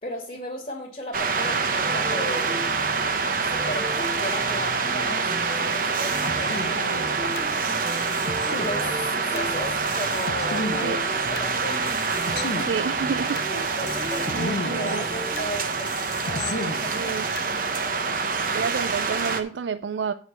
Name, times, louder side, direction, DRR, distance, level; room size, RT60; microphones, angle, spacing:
voice 1, 0.0-2.6 3.4-7.4 8.6-11.9 13.5-17.2 17.5-17.7, left 1 dB, 40° left, 2.5 m, -36 dB
sound 1, 1.1-19.4, right 4 dB, 50° right, 1.0 m, -26 dB
sound 2, 1.8-15.5, equal, ahead, 0.7 m, -38 dB
sound 3, 6.0-7.5 7.9-9.5 9.9-11.5 11.9-13.5 13.9-15.5 15.9-17.5, left 2 dB, 70° left, 0.9 m, -34 dB
voice 2, 12.5-13.5 14.3-15.1 16.9-17.2 18.5-20.1, right 6 dB, 85° right, 0.4 m, -29 dB
9.5 x 5.1 x 6.2 m
head